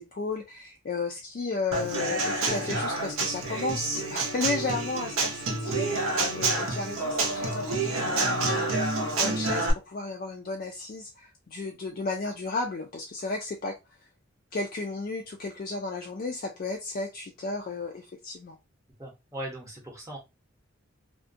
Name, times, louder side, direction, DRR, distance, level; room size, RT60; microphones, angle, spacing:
voice 1, 0.0-13.8 14.5-18.6, left 3 dB, 40° left, 0.3 m, -34 dB
Human voice / Acoustic guitar / Drum, 1.7-9.7, right 3 dB, 80° right, 0.6 m, -28 dB
voice 2, 19.0-20.2, right 1 dB, 15° right, 0.7 m, -39 dB
2.4 x 2.1 x 2.5 m
head